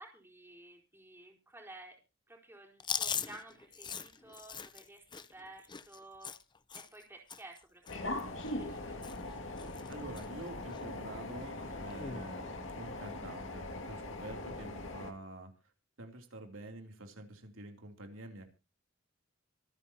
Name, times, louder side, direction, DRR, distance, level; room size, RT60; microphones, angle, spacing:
voice 1, 0.0-2.0 2.3-6.4 6.7-7.8 8.1-9.0, right 2 dB, 10° right, 1 dB, 4.4 m, -53 dB
Chewing mastication, 2.8-7.0 7.3-7.6 7.8-8.8 9.0-9.3 9.6-10.3 10.7-10.8 11.9-12.3, left 7 dB, 25° left, 0.7 m, -40 dB
sound 1, 7.9-15.1, left 2 dB, 70° left, 2.2 m, -41 dB
voice 2, 9.9-15.5 16.0-18.5, right 1 dB, 90° right, 3 dB, 3.0 m, -47 dB
25.5 x 9.3 x 2.8 m, 0.30 s
head